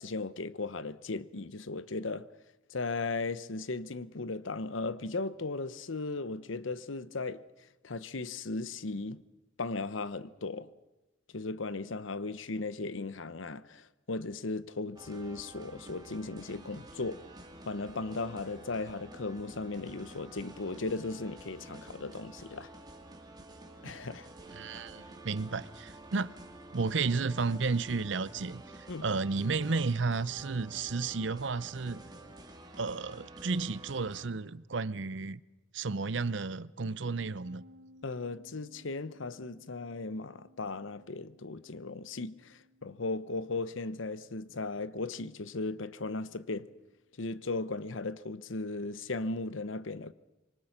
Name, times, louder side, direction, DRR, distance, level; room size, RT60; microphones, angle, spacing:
voice 1, 0.0-2.3 2.7-7.4 7.8-9.2 9.6-10.7 11.3-17.3 17.7-22.7 23.8-24.3 28.9-29.0 38.0-46.7 47.2-50.1, left 3 dB, 80° left, 0.9 m, -37 dB
sound 1, 14.9-34.3, right 2 dB, 20° right, 2.5 m, -50 dB
voice 2, 24.5-26.3 26.7-32.0 32.8-35.4 35.7-37.6, right 4 dB, 65° right, 0.7 m, -32 dB
sound 2, 37.4-46.9, left 1 dB, 90° right, 1.6 m, -62 dB
25.5 x 24.0 x 5.9 m
head